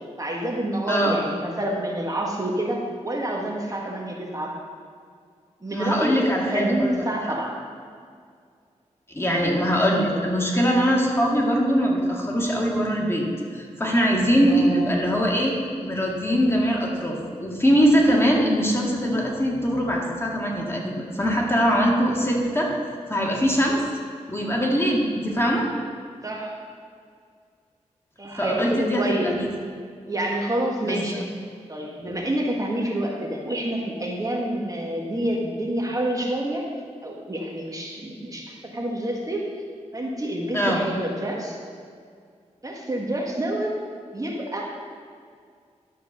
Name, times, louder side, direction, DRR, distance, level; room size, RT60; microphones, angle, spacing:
voice 1, 0.2-4.5 5.6-7.6 14.5-15.1 26.2-26.5 28.2-29.3 30.1-31.2 31.7-36.7 37.0-39.5 39.9-41.6 42.6-43.7 44.1-44.7, right 1 dB, 30° right, -2 dB, 1.7 m, -28 dB
voice 2, 5.7-6.9 9.1-13.2 13.5-22.7 23.1-23.8 24.3-25.7 28.4-29.4 30.8-31.1 40.5-40.8, equal, 20° left, -2 dB, 2.1 m, -22 dB
11.5 x 4.7 x 6.7 m, 2.1 s
cardioid pair, 55°, 12 cm